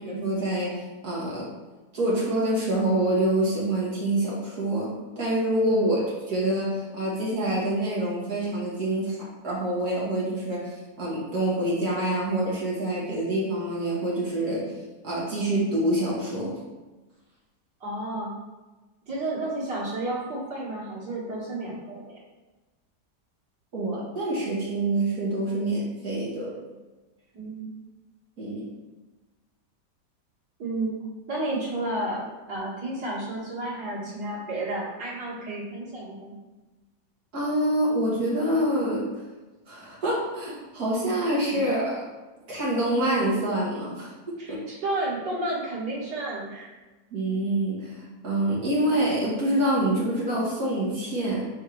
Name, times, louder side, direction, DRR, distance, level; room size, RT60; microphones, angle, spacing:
voice 1, 0.1-1.5 1.9-14.7 15.0-16.6 23.7-26.6 28.4-28.7 37.3-39.1 39.7-42.1 42.5-44.7 47.1-51.4, right 1 dB, 60° right, -5 dB, 2.3 m, -26 dB
voice 2, 17.8-18.3 19.1-22.2 27.3-27.7 30.6-30.9 31.3-36.3 41.5-41.6 44.4-46.8, right 2 dB, 90° right, -6 dB, 2.5 m, -31 dB
4.7 x 4.4 x 4.6 m, 1.2 s
omnidirectional pair, 1.8 m